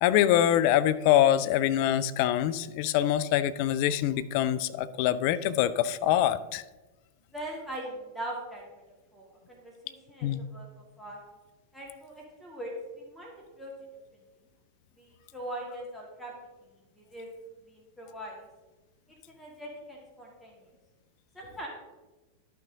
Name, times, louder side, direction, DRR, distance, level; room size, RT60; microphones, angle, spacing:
voice 1, 0.0-6.6 10.2-10.4, left 11 dB, 45° left, 14 dB, 0.4 m, -24 dB
voice 2, 7.3-8.6 9.1-11.2 11.7-13.7 15.0-16.3 16.9-17.3 17.6-18.4 19.3-20.6 21.3-21.7, right 1 dB, ahead, -3 dB, 2.4 m, -41 dB
11.5 x 5.8 x 3.8 m, 1.2 s
figure-of-eight pair, 90°, 0 cm